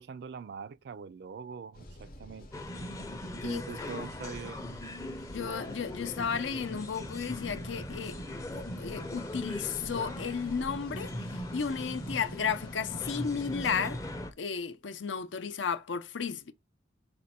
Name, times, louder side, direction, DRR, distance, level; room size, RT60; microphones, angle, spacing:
voice 1, 0.0-2.6 3.4-4.8, right 6 dB, 60° right, 0.3 m, -43 dB
sound 1, 1.7-13.5, left 1 dB, 50° left, 0.8 m, -51 dB
sound 2, 2.5-14.3, left 1 dB, 15° left, 0.5 m, -40 dB
voice 2, 5.3-8.2 8.5-14.0 14.4-16.5, left 6 dB, 75° left, 0.6 m, -34 dB
5.1 x 2.2 x 4.1 m
head